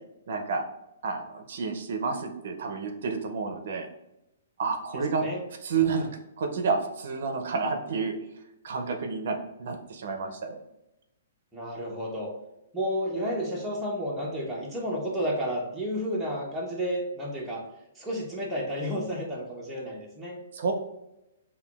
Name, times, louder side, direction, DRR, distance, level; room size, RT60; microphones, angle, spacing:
voice 1, 0.3-0.6 1.0-3.9 4.6-5.2 5.6-6.1 6.4-8.1 8.6-10.6 20.5-20.7, right 5 dB, 55° right, 4 dB, 0.5 m, -30 dB
voice 2, 11.5-12.3 12.7-17.6 17.9-20.4, equal, ahead, -6 dB, 0.6 m, -31 dB
5.5 x 2.2 x 2.3 m, 0.90 s
hypercardioid pair, 170°, 0 cm